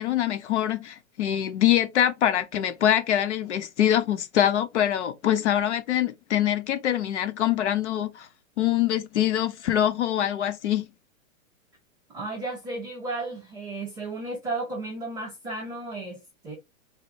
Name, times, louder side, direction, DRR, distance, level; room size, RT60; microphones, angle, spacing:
voice 1, 0.0-8.3 8.6-10.9, left 11 dB, 55° left, 0.8 m, -24 dB
voice 2, 12.1-16.5, right 2 dB, 5° right, 0.5 m, -34 dB
4.2 x 2.2 x 4.4 m
hypercardioid pair, 165°, 41 cm